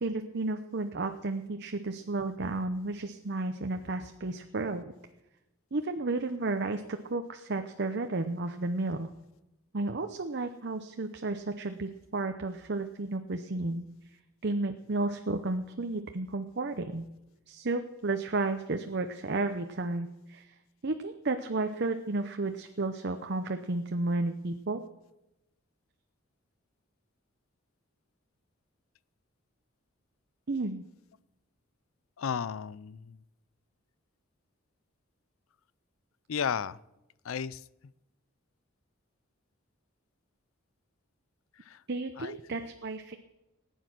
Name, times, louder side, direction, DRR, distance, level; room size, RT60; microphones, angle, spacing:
voice 1, 0.0-4.9 5.7-9.1 9.7-13.9 14.4-17.1 17.5-20.4 20.8-24.8 30.5-30.8 41.9-43.2, right 2 dB, 55° right, 7 dB, 0.7 m, -32 dB
voice 2, 32.2-33.2 36.3-36.8 37.2-37.6 41.6-41.8 42.2-42.4, left 7 dB, 75° left, 19 dB, 0.5 m, -33 dB
19.0 x 9.2 x 6.1 m, 0.95 s
head